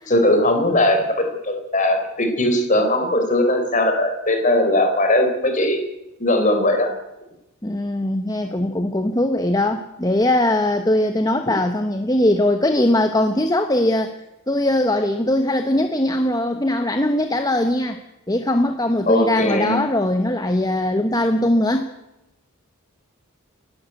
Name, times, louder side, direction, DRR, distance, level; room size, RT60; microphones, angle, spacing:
voice 1, 0.1-5.8 6.2-6.9 19.1-19.8, left 1 dB, 35° left, 5 dB, 4.1 m, -19 dB
voice 2, 7.6-14.1 14.5-18.0 18.3-21.9, left 1 dB, 15° left, 7 dB, 1.0 m, -20 dB
28.5 x 11.5 x 9.2 m, 0.94 s
head